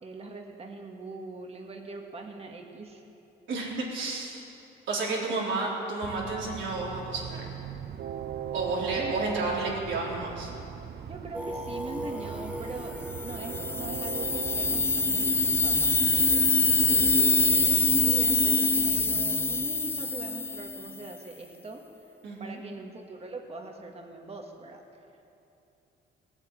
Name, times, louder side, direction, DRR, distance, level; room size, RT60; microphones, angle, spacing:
voice 1, 0.0-3.0 5.0-5.3 8.9-9.2 11.1-13.0 13.2-21.8 22.4-24.8, right 3 dB, 30° right, 2 dB, 1.8 m, -42 dB
voice 2, 3.5-4.4 4.9-7.5 8.5-10.5 22.2-22.6, right 2 dB, 70° right, -4 dB, 4.0 m, -31 dB
Train, 6.0-17.3, right 9 dB, 55° right, 0.7 m, -39 dB
Singing, 11.3-16.1, right 1 dB, 5° right, 1.5 m, -40 dB
sound 1, 13.1-21.0, left 3 dB, 10° left, 0.5 m, -24 dB
18.0 x 8.9 x 8.8 m, 2.8 s
cardioid pair, 90°, 20 cm